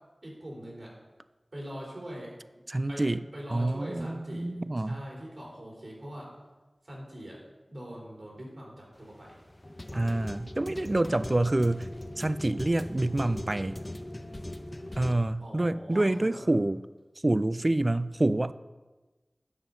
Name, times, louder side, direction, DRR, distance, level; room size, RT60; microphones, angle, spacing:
voice 1, 0.2-0.9 1.5-2.4 2.9-3.1 3.3-6.3 6.8-7.4 7.7-9.4 9.9-10.2 15.4-16.4, equal, 65° right, -4 dB, 3.9 m, -42 dB
voice 2, 2.7-3.2 3.5-5.0 9.9-13.8 15.0-16.8 17.2-18.5, right 2 dB, 40° right, 14 dB, 0.3 m, -27 dB
sound 1, 8.9-15.1, left 1 dB, 30° left, 0.7 m, -41 dB
9.7 x 7.7 x 5.4 m, 1.2 s
wide cardioid pair, 60°, 0 cm